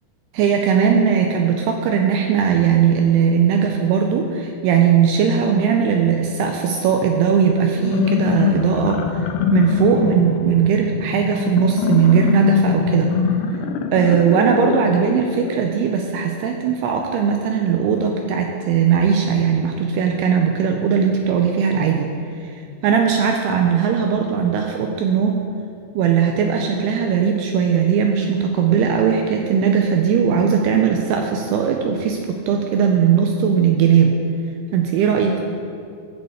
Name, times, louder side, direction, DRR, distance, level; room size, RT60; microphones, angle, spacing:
voice 1, 0.3-9.2 9.5-13.1 13.9-22.1 22.4-22.5 22.8-25.5 25.9-34.2 34.7-35.4, right 7 dB, 80° right, 3 dB, 2.5 m, -18 dB
sound 1, 7.7-15.6, left 7 dB, 80° left, 2.4 m, -23 dB
10.5 x 5.4 x 7.9 m, 2.4 s
omnidirectional pair, 5.0 m